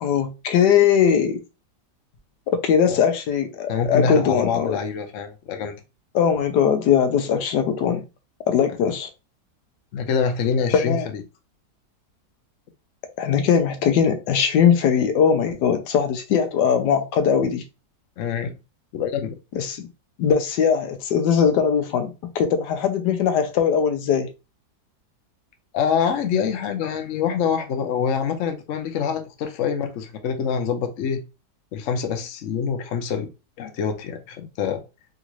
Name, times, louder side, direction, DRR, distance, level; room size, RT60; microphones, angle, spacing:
voice 1, 0.0-1.4 2.5-4.8 6.1-8.0 8.5-9.1 10.7-11.1 13.2-17.6 19.5-19.9 20.2-24.3, left 7 dB, 85° left, 1.3 m, -20 dB
voice 2, 3.7-5.7 9.9-11.2 18.2-18.6 18.9-19.4 25.7-31.2 31.7-33.3 33.6-34.8, left 6 dB, 60° left, 0.9 m, -25 dB
3.7 x 2.5 x 3.0 m
omnidirectional pair, 1.8 m